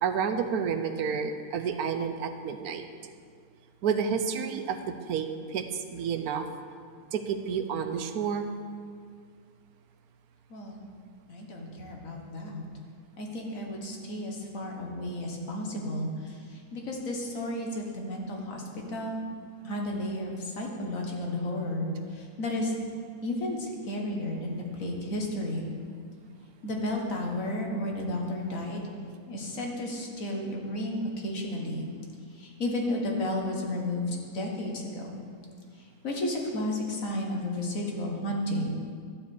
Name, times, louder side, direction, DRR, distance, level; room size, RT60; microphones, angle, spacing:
voice 1, 0.0-2.8 3.8-6.5 7.1-8.5, right 6 dB, 80° right, 8 dB, 1.2 m, -30 dB
voice 2, 10.5-10.8 11.3-12.6 13.2-16.1 16.7-18.6 18.9-19.2 19.6-21.9 22.2-22.8 23.2-25.6 26.6-28.8 29.3-31.9 32.4-35.2 36.0-38.7, left 1 dB, 60° left, 0 dB, 1.8 m, -32 dB
11.5 x 4.9 x 8.1 m, 2.1 s
omnidirectional pair, 1.6 m